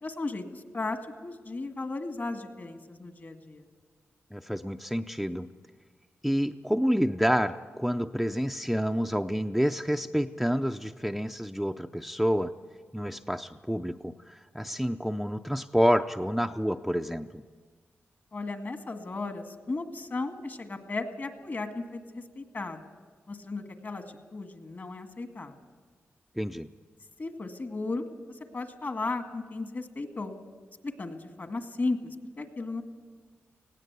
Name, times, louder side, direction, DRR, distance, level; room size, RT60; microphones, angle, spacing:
voice 1, 0.0-3.7 18.3-22.8 23.3-24.0 24.3-25.5 27.2-30.3 30.8-32.8, left 3 dB, 45° left, 7 dB, 1.9 m, -35 dB
voice 2, 4.3-5.5 6.2-12.5 12.9-17.4 26.4-26.7, equal, ahead, 7 dB, 0.5 m, -28 dB
19.0 x 16.5 x 8.2 m, 1.5 s
cardioid pair, 75°, 5 cm